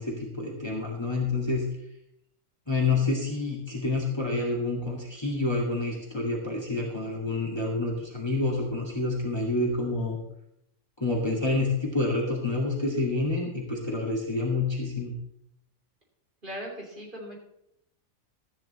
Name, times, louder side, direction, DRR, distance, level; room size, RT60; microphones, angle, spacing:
voice 1, 0.0-1.6 2.7-10.2 11.0-15.1, left 3 dB, 20° left, -2 dB, 2.0 m, -28 dB
voice 2, 16.4-17.4, equal, 35° right, -3 dB, 3.3 m, -38 dB
13.5 x 9.0 x 4.2 m, 0.77 s
omnidirectional pair, 1.4 m